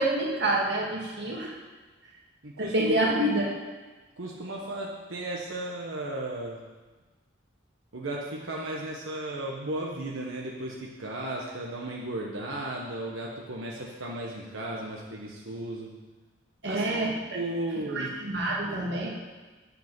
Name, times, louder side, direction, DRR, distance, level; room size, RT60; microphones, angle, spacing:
voice 1, 0.0-1.5 2.6-3.5 16.6-17.2 17.9-19.1, right 1 dB, 60° right, -3 dB, 2.2 m, -27 dB
voice 2, 2.4-3.4 4.2-6.6 7.9-15.9 16.6-16.9 17.3-18.1, right 1 dB, 90° right, -2 dB, 1.2 m, -35 dB
8.2 x 8.1 x 6.1 m, 1.3 s
head